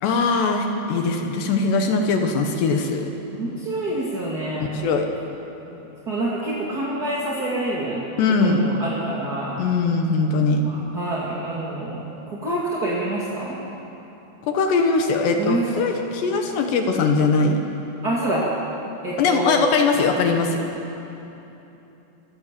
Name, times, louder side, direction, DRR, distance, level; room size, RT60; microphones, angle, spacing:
voice 1, 0.0-3.1 4.7-5.1 8.2-8.7 9.6-10.6 14.5-17.7 19.2-20.6, left 4 dB, 70° left, 4 dB, 3.2 m, -21 dB
voice 2, 3.4-4.7 5.6-8.0 8.4-9.6 10.6-13.6 15.4-15.9 18.0-18.5 19.0-19.7, right 2 dB, 35° right, -6 dB, 1.6 m, -27 dB
26.5 x 16.0 x 7.6 m, 3.0 s
omnidirectional pair, 5.6 m